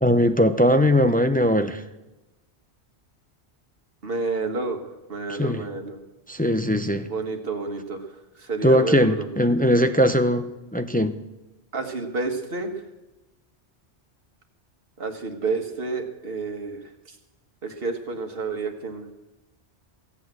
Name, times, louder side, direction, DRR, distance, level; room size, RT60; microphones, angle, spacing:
voice 1, 0.0-1.8 5.3-5.6 6.3-7.1 8.6-11.1, equal, 10° left, 8 dB, 0.5 m, -20 dB
voice 2, 4.0-6.0 7.0-8.1 8.4-9.3 11.7-12.7 15.0-16.8 17.1-17.2 17.6-19.1, right 3 dB, 55° right, 5 dB, 1.7 m, -30 dB
15.5 x 8.3 x 7.8 m, 1.0 s
omnidirectional pair, 1.1 m